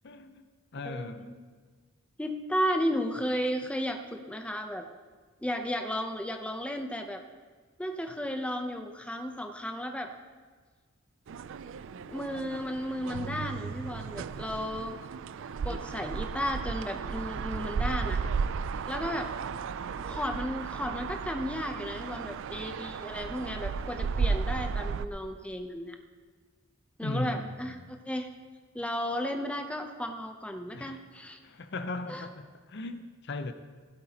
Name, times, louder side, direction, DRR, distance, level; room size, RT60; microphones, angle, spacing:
voice 1, 0.0-1.3 27.0-27.6 30.7-31.0 31.4-33.5, left 2 dB, 55° left, 0.6 m, -37 dB
voice 2, 0.8-1.4 2.2-4.9 5.4-7.2 7.8-10.1 11.9-14.9 15.6-18.3 18.9-19.3 20.1-26.0 27.0-28.3 28.7-31.4 32.1-32.2, equal, 5° left, 0.6 m, -34 dB
sound 1, 11.3-25.1, right 5 dB, 60° right, 0.3 m, -34 dB
16.0 x 12.0 x 2.9 m
head